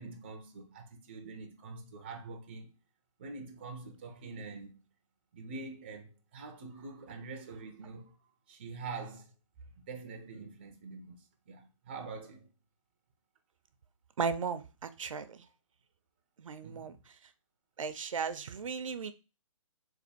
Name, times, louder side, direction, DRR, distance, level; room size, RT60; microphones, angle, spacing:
voice 1, 0.0-2.7 3.2-4.8 5.3-9.3 9.6-12.5 16.6-17.0, right 4 dB, 20° right, 0.4 m, -45 dB
voice 2, 14.2-15.4 16.4-17.0 17.8-19.1, right 5 dB, 75° right, 0.5 m, -36 dB
3.4 x 2.4 x 4.0 m
hypercardioid pair, 165°, 17 cm